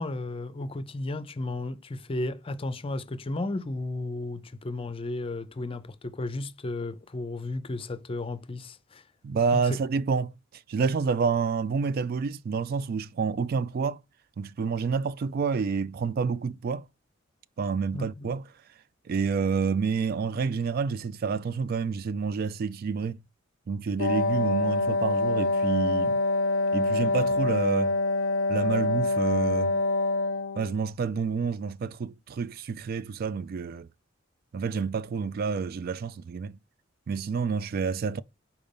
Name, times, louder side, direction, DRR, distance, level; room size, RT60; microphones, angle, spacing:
voice 1, 0.0-9.0 9.6-9.8 17.9-18.3, left 2 dB, 30° left, 0.5 m, -34 dB
voice 2, 9.2-14.0 14.4-16.9 17.6-18.4 19.1-23.2 23.7-26.2 26.7-28.0 28.5-29.8 30.6-33.9 34.5-36.5 37.1-38.2, right 5 dB, 50° right, 0.3 m, -28 dB
Wind instrument woodwind instrument, 24.0-30.8, left 2 dB, 80° left, 0.5 m, -25 dB
5.2 x 4.7 x 5.2 m
head